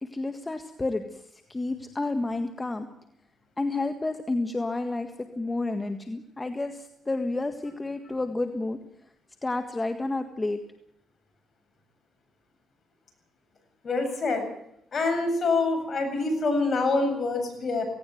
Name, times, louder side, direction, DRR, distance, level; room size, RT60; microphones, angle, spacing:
voice 1, 0.0-2.9 3.6-8.8 9.4-10.6, left 2 dB, 20° left, 7 dB, 1.7 m, -30 dB
voice 2, 13.8-14.4 14.9-17.9, left 3 dB, 45° left, 5 dB, 8.0 m, -25 dB
18.0 x 18.0 x 9.3 m, 0.77 s
cardioid pair, 90°, 0 cm